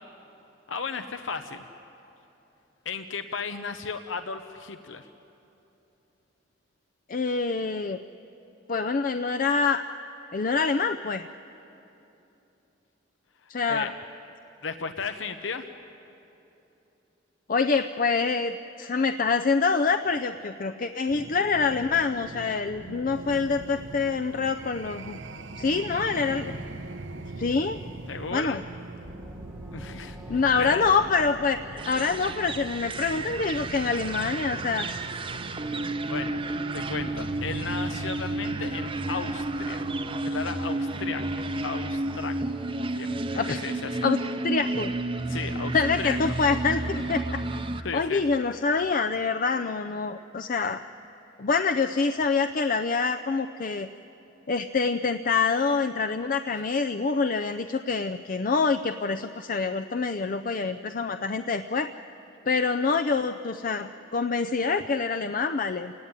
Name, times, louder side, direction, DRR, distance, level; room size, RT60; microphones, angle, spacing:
voice 1, 0.7-1.7 2.8-5.1 13.4-13.9 14.6-15.7 28.1-28.6 29.7-30.8 36.1-36.4 36.7-39.9 40.2-41.2 41.6-42.3 42.9-44.1 45.3-46.2 47.8-48.2, left 5 dB, 85° left, 8 dB, 0.9 m, -35 dB
voice 2, 7.1-8.0 8.7-9.8 10.3-11.3 13.5-13.9 17.5-25.2 25.6-26.5 27.4-27.8 28.3-28.6 30.3-35.0 43.4-43.6 44.0-44.2 44.4-44.9 45.7-47.6 47.9-50.8 51.4-53.9 54.5-61.9 62.5-65.9, left 4 dB, 45° left, 9 dB, 0.5 m, -26 dB
sound 1, 21.1-40.1, right 2 dB, 80° right, 0.9 m, -41 dB
Gong, 29.0-34.3, equal, 5° right, 1.2 m, -47 dB
sound 2, 31.8-47.8, right 2 dB, 30° right, 0.8 m, -31 dB
28.5 x 17.5 x 9.7 m, 3.0 s
head